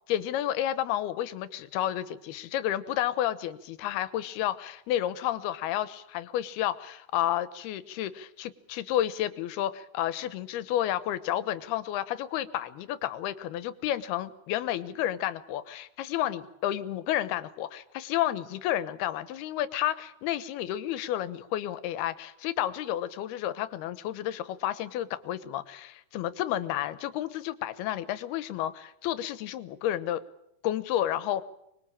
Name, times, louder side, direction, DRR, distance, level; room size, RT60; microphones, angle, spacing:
voice 1, 0.1-30.2 30.6-31.4, left 12 dB, 85° left, 15 dB, 3.1 m, -31 dB
25.5 x 22.0 x 8.8 m, 0.80 s
omnidirectional pair, 4.4 m